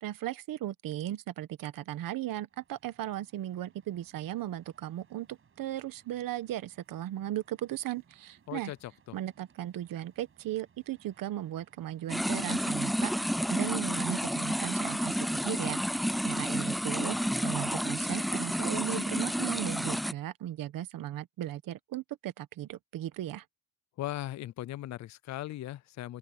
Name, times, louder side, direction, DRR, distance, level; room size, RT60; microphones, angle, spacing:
voice 1, 0.0-8.7 9.1-13.1 13.5-15.8 16.2-23.4, right 13 dB, 80° right, 1.1 m, -37 dB
sound 1, 2.5-13.3, right 7 dB, 40° right, 7.7 m, -65 dB
voice 2, 8.5-9.2 24.0-26.2, left 14 dB, 55° left, 0.5 m, -38 dB
sound 2, 12.1-20.1, equal, ahead, 0.3 m, -30 dB
open air
cardioid pair, 165°, 34 cm